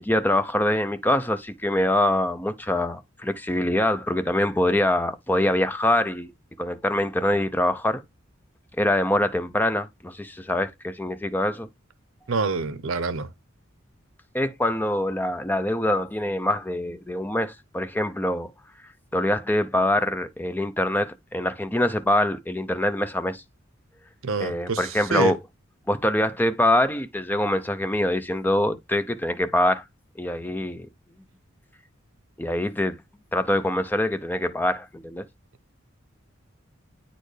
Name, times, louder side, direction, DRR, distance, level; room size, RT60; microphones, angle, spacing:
voice 1, 0.0-6.3 6.6-8.0 8.8-11.7 14.3-18.5 19.1-23.4 24.4-25.4 25.9-29.8 30.2-30.9 32.4-33.0 33.3-35.3, left 1 dB, 10° left, 0.5 m, -24 dB
voice 2, 12.3-13.3 24.2-24.8 25.1-25.3, right 4 dB, 85° right, 0.7 m, -26 dB
9.0 x 4.3 x 3.2 m
head